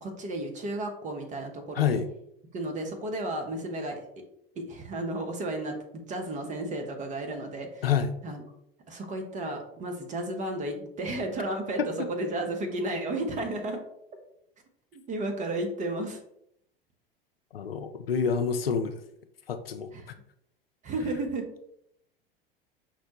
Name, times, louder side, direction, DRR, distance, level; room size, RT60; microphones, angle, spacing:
voice 1, 0.0-2.0 2.5-4.0 4.7-5.7 6.1-7.8 8.2-8.4 8.9-13.8 14.9-16.2 19.9-20.0 20.8-21.5, right 1 dB, 25° right, 3 dB, 0.8 m, -33 dB
voice 2, 1.7-2.1 7.8-8.1 17.5-19.0 19.5-19.9, left 7 dB, 80° left, 7 dB, 0.5 m, -27 dB
5.8 x 2.1 x 2.9 m, 0.73 s
figure-of-eight pair, 85°, 29 cm